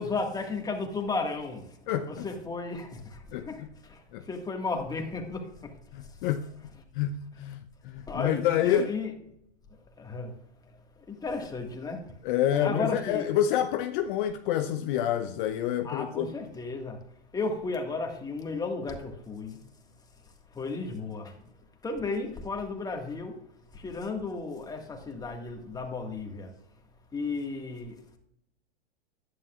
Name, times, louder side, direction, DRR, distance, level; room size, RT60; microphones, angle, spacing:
voice 1, 0.0-5.8 6.1-6.8 7.3-7.4 8.1-9.1 10.0-10.3 11.0-12.2 12.4-13.3 15.8-17.0 17.3-19.6 20.2-21.5 21.8-23.4 23.7-26.5 27.1-28.0, left 3 dB, 10° left, 1.7 m, -34 dB
voice 2, 1.9-2.3 3.3-3.7 4.1-4.3 5.9-6.5 6.9-8.9 12.2-16.3, left 10 dB, 50° left, 0.6 m, -28 dB
11.0 x 9.7 x 2.4 m
hypercardioid pair, 115°, 32 cm